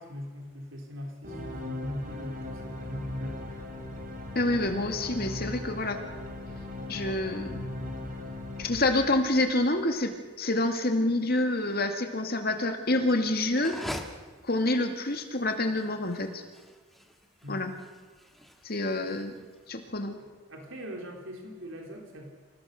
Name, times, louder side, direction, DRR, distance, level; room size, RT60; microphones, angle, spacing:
voice 1, 0.0-3.4 17.4-17.6 20.5-22.3, equal, 75° right, 1 dB, 3.7 m, -40 dB
sound 1, 1.2-9.7, left 1 dB, 45° right, 3.5 m, -38 dB
voice 2, 4.3-6.0 6.9-7.6 8.6-13.8 14.4-16.4 17.5-17.7 18.6-19.4 19.7-20.2, left 2 dB, 50° left, 5 dB, 2.3 m, -27 dB
sound 2, 13.5-19.6, equal, ahead, 1.5 m, -43 dB
27.0 x 17.0 x 6.6 m, 1.4 s
head